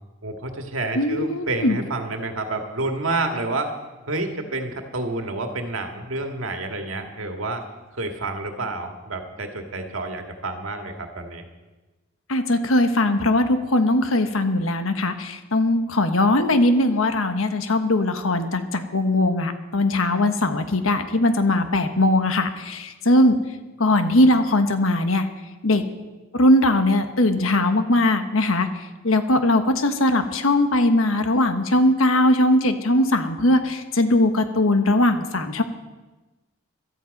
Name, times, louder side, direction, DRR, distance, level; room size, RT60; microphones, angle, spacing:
voice 1, 0.2-3.7 4.1-7.7 8.0-11.4, right 2 dB, 80° right, 4 dB, 1.8 m, -29 dB
voice 2, 0.9-1.8 12.3-23.3 23.8-25.3 25.6-25.8 26.3-35.6, left 1 dB, 85° left, 8 dB, 1.3 m, -20 dB
17.0 x 12.5 x 5.3 m, 1.2 s
head